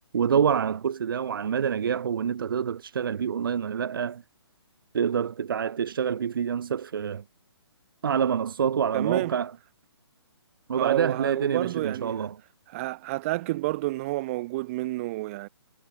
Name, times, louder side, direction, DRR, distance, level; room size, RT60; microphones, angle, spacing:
voice 1, 0.1-4.2 4.9-7.2 8.0-9.5 10.7-12.3, right 7 dB, 55° right, 2.3 m, -26 dB
voice 2, 8.9-9.4 10.8-12.3 12.7-15.5, right 19 dB, 30° right, 2.4 m, -30 dB
figure-of-eight pair, 135°, 14 cm